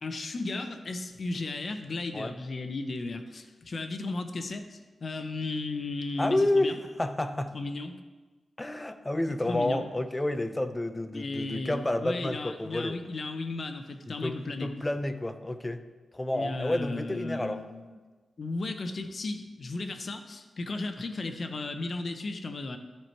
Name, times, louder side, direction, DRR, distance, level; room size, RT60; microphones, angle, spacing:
voice 1, 0.0-6.8 7.5-8.0 9.4-9.9 11.1-14.7 16.3-18.0 18.4-22.8, left 3 dB, 50° left, 7 dB, 0.8 m, -35 dB
voice 2, 6.2-7.6 8.6-13.0 14.1-15.8 16.1-17.6, left 1 dB, 15° left, 9 dB, 0.5 m, -30 dB
13.0 x 4.6 x 4.5 m, 1.3 s
wide cardioid pair, 110°, 0 cm